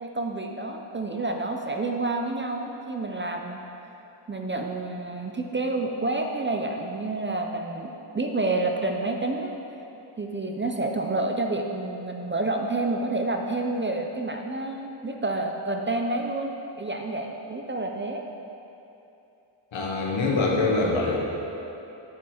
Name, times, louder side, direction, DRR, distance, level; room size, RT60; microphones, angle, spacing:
voice 1, 0.0-3.6 4.3-9.6 10.2-18.2, right 2 dB, 25° right, 3 dB, 0.3 m, -29 dB
voice 2, 19.7-21.2, left 3 dB, 70° left, -2 dB, 1.3 m, -24 dB
9.1 x 5.3 x 4.3 m, 2.9 s
wide cardioid pair, 160°, 49 cm